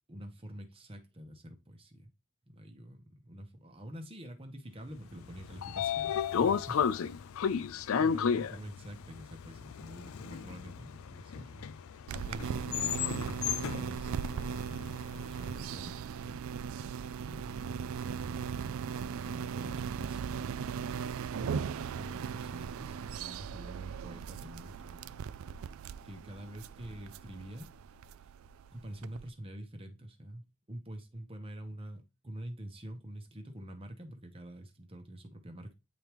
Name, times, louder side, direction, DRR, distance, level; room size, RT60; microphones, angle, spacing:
voice 1, 0.1-2.1 2.5-6.8 7.9-11.8 12.2-14.7 15.0-16.4 17.2-18.0 19.2-20.4 21.3-25.3 26.0-27.7 28.7-35.7, right 1 dB, 25° right, 1.0 m, -47 dB
Train / Sliding door, 5.2-15.3, left 7 dB, 70° left, 0.4 m, -33 dB
sound 1, 12.1-29.3, right 6 dB, 70° right, 0.3 m, -38 dB
9.3 x 3.5 x 3.0 m
head